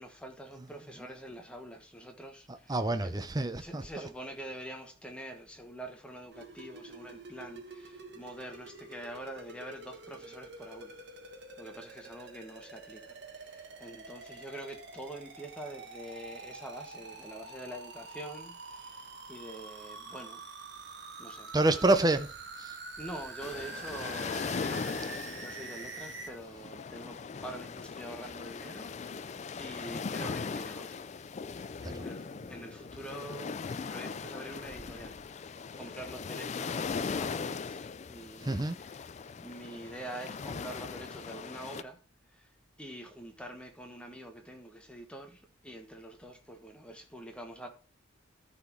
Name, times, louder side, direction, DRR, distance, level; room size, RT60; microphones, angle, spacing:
voice 1, 0.0-2.7 3.0-3.1 3.6-10.9 11.6-20.4 20.9-21.5 23.0-31.1 31.8-39.1 39.4-42.0 42.3-42.5 42.8-47.7, right 1 dB, 5° left, 1.2 m, -46 dB
voice 2, 2.5-3.9 21.5-22.3 22.6-22.8 31.8-32.4 38.4-38.8, right 2 dB, 20° right, 0.6 m, -28 dB
sound 1, 6.3-26.3, right 3 dB, 55° right, 1.4 m, -46 dB
sound 2, 23.4-41.8, left 5 dB, 35° left, 0.3 m, -39 dB
13.0 x 4.3 x 4.5 m
head